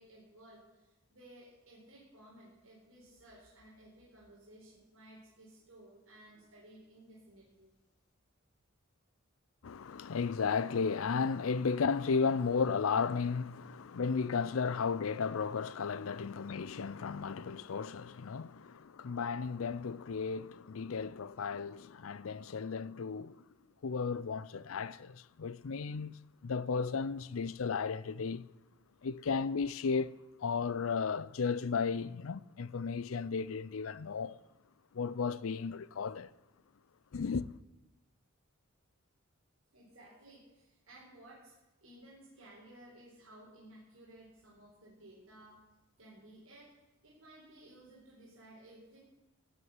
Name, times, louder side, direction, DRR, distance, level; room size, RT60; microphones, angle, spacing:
voice 1, 0.0-7.7 39.7-41.5 41.8-45.6 46.0-46.7 47.0-49.0, right 1 dB, 75° right, 4.3 m, -57 dB
voice 2, 9.6-23.4 23.8-28.5 29.0-30.1 30.4-34.4 34.9-36.3 37.1-37.5, left 5 dB, 70° left, 0.5 m, -34 dB
15.5 x 6.5 x 9.4 m
head